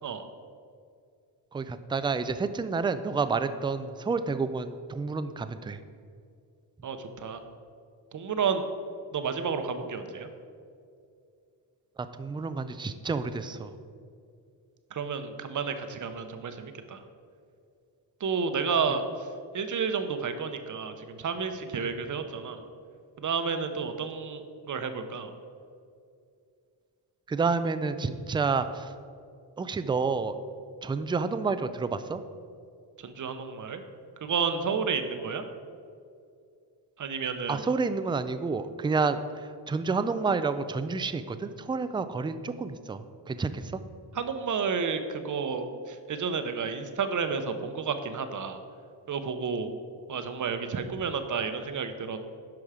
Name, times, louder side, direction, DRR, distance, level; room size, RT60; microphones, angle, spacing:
voice 1, 1.5-5.8 12.1-13.7 27.3-28.9 29.6-30.4 30.8-32.2 37.5-43.8, right 4 dB, 15° right, 11 dB, 0.3 m, -29 dB
voice 2, 6.8-7.4 8.1-8.6 9.1-10.3 14.9-17.0 18.2-19.3 19.5-22.6 23.2-25.3 33.0-33.8 34.2-35.4 37.0-37.6 44.1-48.6 49.1-49.7 50.1-52.2, right 5 dB, 45° right, 8 dB, 0.9 m, -31 dB
10.5 x 6.2 x 4.9 m, 2.4 s
cardioid pair, 115°, 42 cm